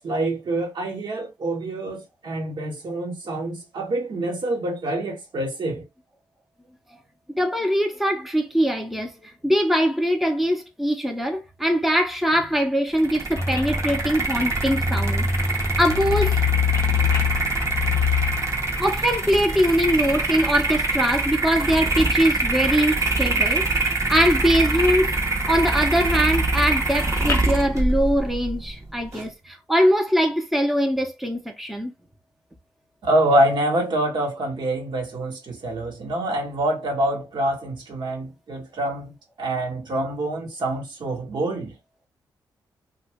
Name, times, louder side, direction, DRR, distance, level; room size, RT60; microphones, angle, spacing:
voice 1, 0.0-5.8 33.0-41.8, right 1 dB, 60° right, 1.2 m, -26 dB
voice 2, 7.3-15.3 15.8-16.4 18.8-23.7 24.1-25.1 25.5-31.9, equal, ahead, 0.7 m, -22 dB
sound 1, 12.9-29.3, right 3 dB, 35° right, 0.9 m, -25 dB
sound 2, 13.4-20.8 21.2-22.3 22.6-22.9 23.2-24.0 24.4-24.9 25.3-27.6, left 6 dB, 30° left, 0.6 m, -27 dB
2.6 x 2.2 x 3.4 m
supercardioid pair, 55°, 9 cm